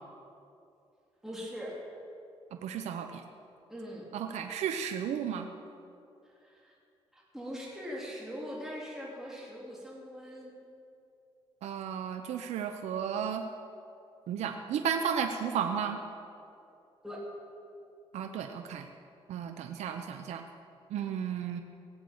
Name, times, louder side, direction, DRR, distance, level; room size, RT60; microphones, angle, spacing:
voice 1, 1.2-1.8 3.7-4.1 6.2-6.7 7.1-10.5 17.0-17.2, equal, 5° right, -5 dB, 3.6 m, -41 dB
voice 2, 2.6-3.2 4.1-5.5 11.6-13.4 14.3-16.0 18.1-18.9 19.3-20.4 20.9-21.6, right 8 dB, 90° right, 6 dB, 0.8 m, -33 dB
17.5 x 7.8 x 8.7 m, 2.6 s
cardioid pair, 90°, 11 cm